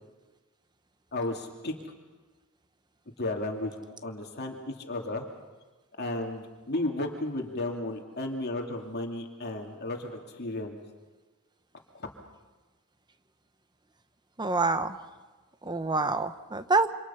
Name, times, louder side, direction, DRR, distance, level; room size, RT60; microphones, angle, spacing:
voice 1, 1.1-1.7 3.2-5.3 6.0-10.8 11.9-12.1, left 2 dB, 45° left, 2 dB, 2.5 m, -34 dB
voice 2, 14.4-14.9 15.6-16.9, right 3 dB, 20° right, 10 dB, 1.0 m, -26 dB
28.0 x 26.0 x 5.7 m, 1.3 s
head